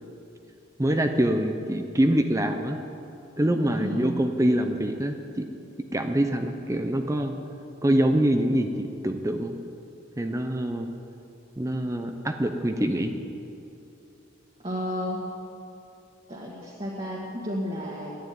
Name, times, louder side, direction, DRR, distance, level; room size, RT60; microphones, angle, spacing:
voice 1, 0.8-2.8 3.4-5.4 5.9-7.3 7.8-9.6 10.2-10.9 11.6-13.1, right 1 dB, 15° right, 6 dB, 0.6 m, -25 dB
voice 2, 3.8-4.1 14.6-15.2 16.3-18.2, equal, 30° right, -5 dB, 1.7 m, -32 dB
12.5 x 9.6 x 9.4 m, 2.8 s
head